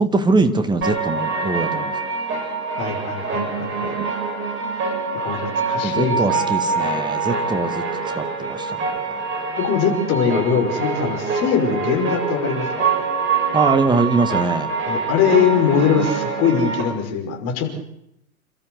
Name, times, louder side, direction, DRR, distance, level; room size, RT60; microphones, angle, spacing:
voice 1, 0.0-1.9 5.8-7.8 8.1-8.7 13.5-14.7, right 3 dB, 10° right, 10 dB, 2.0 m, -21 dB
sound 1, 0.8-16.8, right 4 dB, 30° right, 6.3 m, -25 dB
voice 2, 2.7-3.9 5.1-6.2 9.6-12.9 14.9-17.7, left 6 dB, 35° left, 2 dB, 5.8 m, -21 dB
28.5 x 13.5 x 8.1 m, 0.79 s
hypercardioid pair, 110°, 42 cm